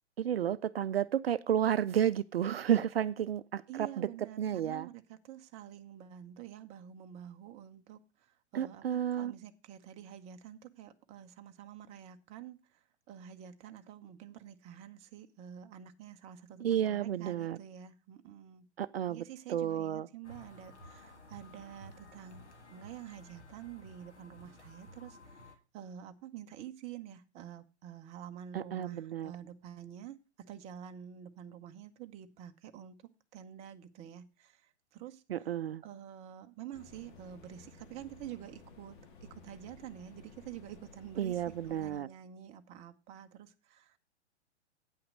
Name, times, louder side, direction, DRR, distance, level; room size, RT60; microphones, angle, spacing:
voice 1, 0.2-4.1 4.4-4.9 8.5-9.3 16.6-17.6 18.8-19.2 19.5-20.1 28.5-29.3 35.3-35.8 41.2-42.1, right 10 dB, 60° right, 0.5 m, -31 dB
voice 2, 3.7-18.7 19.1-30.2 30.5-33.0 33.3-35.6 35.8-44.0, right 10 dB, 20° right, 0.6 m, -48 dB
sound 1, 20.2-25.5, left 1 dB, 80° left, 1.8 m, -54 dB
sound 2, 36.7-42.0, left 4 dB, 45° left, 1.8 m, -55 dB
9.0 x 5.8 x 6.3 m
figure-of-eight pair, 110°, 34 cm